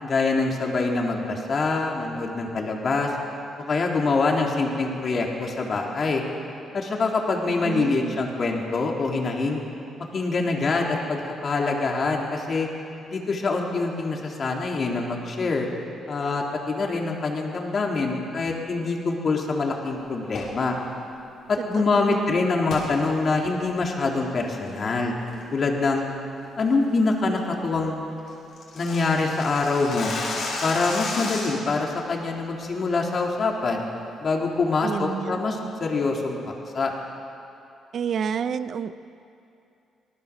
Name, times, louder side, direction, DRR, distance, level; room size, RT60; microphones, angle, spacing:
voice 1, 0.0-3.1 3.7-6.2 6.7-9.6 10.1-12.7 13.1-15.7 16.1-20.8 21.5-25.1 25.5-26.1 26.6-28.0 28.7-30.1 30.6-33.9 34.2-36.9, left 3 dB, 45° left, 0 dB, 3.9 m, -25 dB
voice 2, 7.6-8.2 21.7-22.4 34.8-35.4 37.9-38.9, right 7 dB, 55° right, 12 dB, 0.9 m, -29 dB
sound 1, 20.3-20.6 22.7-22.9 23.4-23.5 24.0-24.3 24.6-25.0 25.3-25.6 25.9-26.0 26.4-26.7 27.0-27.1 27.5-27.6 27.7-27.8 28.1-31.8, left 3 dB, 65° left, 6.8 m, -33 dB
27.0 x 19.0 x 7.6 m, 2.7 s
cardioid pair, 90°, 0 cm